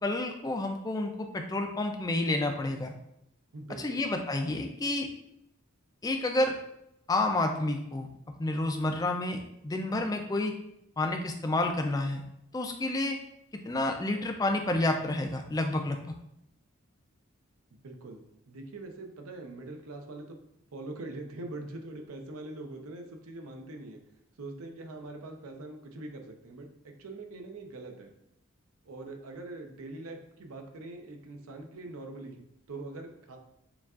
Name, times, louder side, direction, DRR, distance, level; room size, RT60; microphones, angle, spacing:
voice 1, 0.0-2.9 3.8-5.1 6.0-6.5 7.1-8.1 8.4-10.5 11.0-12.2 12.5-13.2 13.6-16.0, left 2 dB, 15° left, 4 dB, 0.3 m, -29 dB
voice 2, 3.5-4.0 17.7-20.4 20.7-24.0 24.4-28.1 28.9-32.4 32.7-33.4, right 2 dB, 80° right, 4 dB, 0.6 m, -43 dB
6.8 x 2.4 x 2.4 m, 0.81 s
head